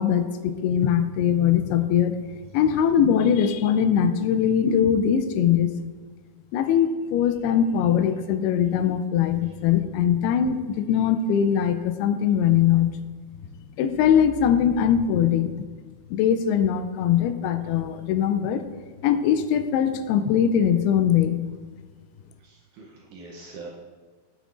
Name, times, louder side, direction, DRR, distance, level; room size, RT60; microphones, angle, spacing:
voice 1, 0.0-2.2 2.5-5.7 6.5-12.9 13.8-15.5 16.1-18.6 19.0-21.4, left 8 dB, 85° left, 9 dB, 2.6 m, -21 dB
voice 2, 22.4-23.7, right 3 dB, 75° right, -2 dB, 1.9 m, -43 dB
9.7 x 9.0 x 2.5 m, 1.4 s
omnidirectional pair, 4.5 m